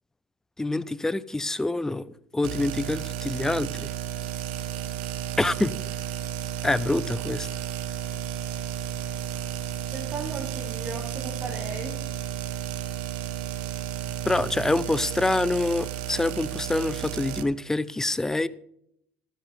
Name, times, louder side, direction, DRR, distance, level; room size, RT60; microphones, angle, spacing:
voice 1, 0.6-2.1 2.3-3.9 5.4-5.7 6.6-7.5 14.2-18.5, left 2 dB, 10° left, 0.5 m, -26 dB
sound 1, 2.4-17.4, right 10 dB, 80° right, 0.8 m, -33 dB
voice 2, 9.9-12.0, right 4 dB, 35° right, 2.1 m, -36 dB
12.5 x 10.5 x 3.5 m
supercardioid pair, 90°, 5 cm